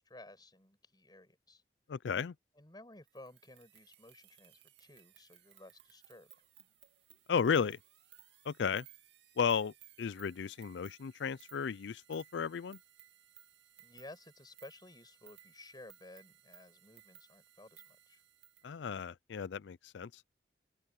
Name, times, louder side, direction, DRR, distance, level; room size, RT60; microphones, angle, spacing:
voice 1, 0.0-1.6 2.5-6.3 13.8-18.2, left 1 dB, 25° left, 6.5 m, -55 dB
voice 2, 1.9-2.3 7.3-7.8 8.5-8.9 9.4-12.8 18.6-20.1, left 6 dB, 80° left, 0.4 m, -34 dB
sound 1, 3.1-18.7, right 11 dB, 80° right, 2.5 m, -61 dB
open air
head